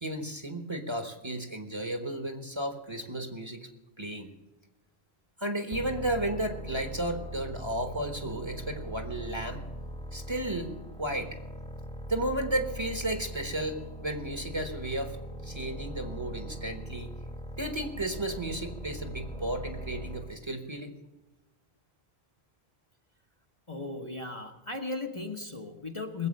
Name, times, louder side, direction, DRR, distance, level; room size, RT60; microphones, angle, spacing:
voice 1, 0.0-3.7 4.0-4.3 5.4-9.6 10.1-11.4 12.1-15.2 15.4-17.1 17.6-20.9, right 1 dB, 25° right, 5 dB, 1.3 m, -33 dB
sound 1, 5.7-20.4, equal, 5° left, 1.2 m, -41 dB
voice 2, 23.7-26.3, left 3 dB, 30° left, 2 dB, 1.1 m, -36 dB
20.0 x 8.0 x 6.5 m, 1.1 s
omnidirectional pair, 1.1 m